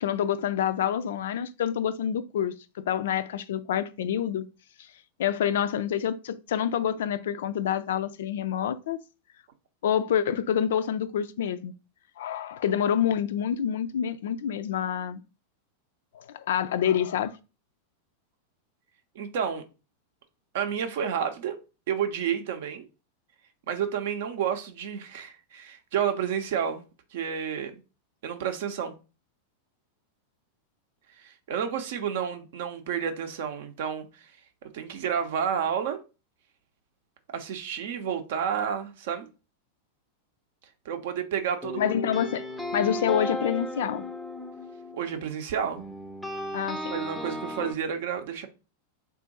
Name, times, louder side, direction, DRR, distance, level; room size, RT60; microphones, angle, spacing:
voice 1, 0.0-4.4 5.2-9.0 9.8-11.7 12.2-15.2 16.1-17.3 41.8-42.4 42.7-44.0 46.5-46.9, left 9 dB, 60° left, 0.3 m, -27 dB
voice 2, 19.1-19.6 20.5-21.6 21.9-22.9 23.7-26.8 27.1-27.8 28.2-28.9 31.2-34.3 34.7-36.0 37.3-39.3 40.8-41.9 44.9-45.8 46.9-48.5, right 8 dB, 55° right, 0.6 m, -30 dB
sound 1, 41.6-45.4 45.8-47.7, left 1 dB, ahead, 0.5 m, -35 dB
3.6 x 2.5 x 3.9 m
figure-of-eight pair, 90°, 0 cm